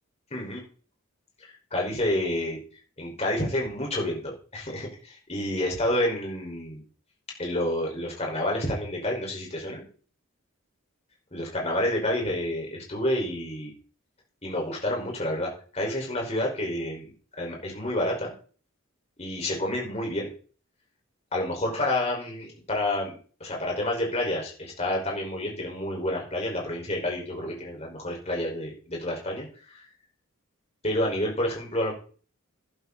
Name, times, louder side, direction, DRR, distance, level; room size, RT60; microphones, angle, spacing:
voice 1, 0.3-0.6 1.7-2.6 3.0-6.8 7.4-9.9 11.3-13.7 14.4-17.1 17.4-18.3 19.2-20.3 21.3-29.8 30.8-31.9, left 1 dB, 30° left, -1 dB, 5.5 m, -29 dB
12.0 x 11.5 x 4.3 m, 0.41 s
head